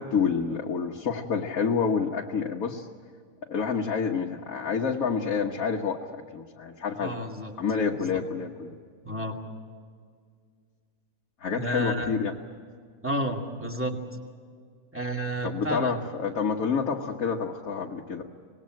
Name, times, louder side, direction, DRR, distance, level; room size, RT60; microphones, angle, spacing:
voice 1, 0.0-2.9 3.5-7.2 7.6-8.7 11.4-12.3 15.4-18.2, left 6 dB, 65° left, -1 dB, 1.7 m, -28 dB
voice 2, 7.0-7.5 7.9-8.2 9.0-9.4 11.5-12.1 13.0-14.0 14.9-16.0, right 1 dB, 10° right, 1 dB, 2.4 m, -31 dB
25.5 x 20.0 x 7.7 m, 2.1 s
omnidirectional pair, 1.6 m